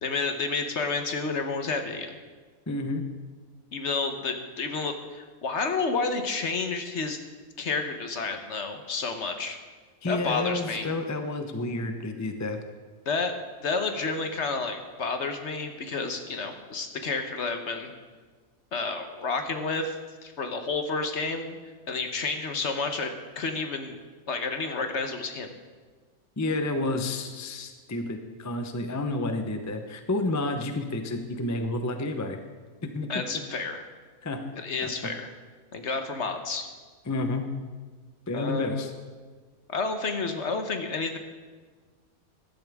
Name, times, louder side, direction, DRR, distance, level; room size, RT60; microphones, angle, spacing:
voice 1, 0.0-2.2 3.7-7.2 7.6-9.6 10.0-10.9 13.1-13.3 13.6-17.9 18.7-20.0 20.2-21.5 21.9-24.0 24.3-25.5 33.1-33.9 34.5-35.3 35.7-36.7 38.3-38.9 39.7-41.2, left 4 dB, 55° left, 6 dB, 1.2 m, -30 dB
voice 2, 2.7-3.0 10.0-12.6 26.4-32.4 32.8-33.2 34.2-34.4 34.8-34.9 37.1-37.5 38.3-38.9, left 2 dB, 15° left, 6 dB, 0.6 m, -30 dB
15.0 x 12.0 x 3.5 m, 1.4 s
omnidirectional pair, 1.5 m